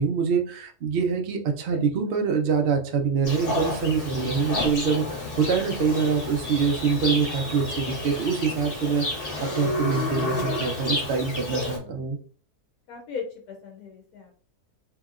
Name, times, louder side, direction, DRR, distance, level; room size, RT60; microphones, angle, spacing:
voice 1, 0.0-12.2, right 5 dB, 70° right, 3 dB, 0.5 m, -25 dB
Livestock farm animals working animals, 3.2-11.8, left 2 dB, 40° left, 1.0 m, -30 dB
voice 2, 11.2-12.1 12.9-14.3, left 6 dB, 75° left, 1 dB, 1.1 m, -39 dB
2.9 x 2.8 x 2.4 m, 0.42 s
omnidirectional pair, 1.7 m